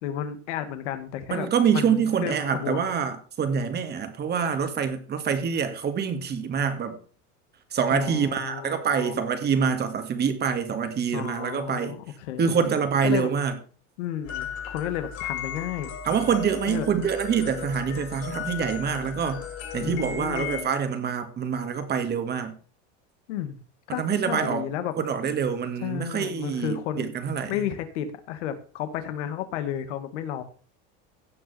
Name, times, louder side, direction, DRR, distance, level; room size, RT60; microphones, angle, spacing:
voice 1, 0.0-2.9 7.9-9.2 11.1-12.5 13.0-13.3 14.0-15.9 16.7-16.9 19.8-20.7 23.3-23.6 23.9-24.9 25.8-27.1 27.5-30.4, left 10 dB, 85° left, 2.0 m, -32 dB
voice 2, 1.3-7.0 7.7-12.0 12.4-13.6 16.0-19.5 19.7-22.6 23.9-24.7 25.0-27.6, right 7 dB, 30° right, 1.9 m, -26 dB
sound 1, 14.2-20.6, left 8 dB, 45° left, 3.9 m, -36 dB
16.5 x 6.1 x 4.3 m
supercardioid pair, 140°, 35 cm